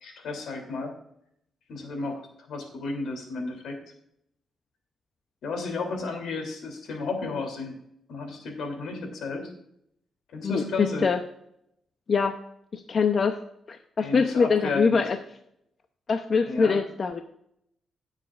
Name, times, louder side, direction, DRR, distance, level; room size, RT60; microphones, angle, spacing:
voice 1, 0.0-0.9 1.7-3.8 5.4-7.7 8.1-9.5 10.3-11.1 14.0-15.0 16.4-16.8, left 3 dB, 80° left, 3 dB, 3.0 m, -33 dB
voice 2, 10.4-11.2 12.1-12.4 12.7-13.4 13.7-15.2 16.1-17.2, left 5 dB, 45° left, 6 dB, 0.7 m, -24 dB
17.0 x 7.4 x 2.5 m, 0.74 s
cardioid pair, 120°, 0 cm